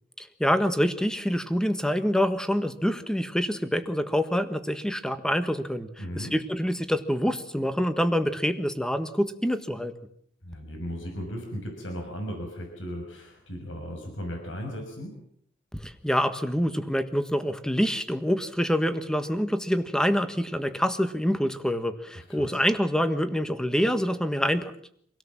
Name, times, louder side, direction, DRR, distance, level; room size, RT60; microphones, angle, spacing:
voice 1, 0.2-5.9 6.1-9.9 15.7-24.7, equal, 5° left, 10 dB, 1.5 m, -26 dB
voice 2, 6.0-6.3 10.4-15.1 22.1-22.5, equal, 75° left, 3 dB, 6.2 m, -36 dB
26.5 x 17.5 x 7.5 m, 0.66 s
head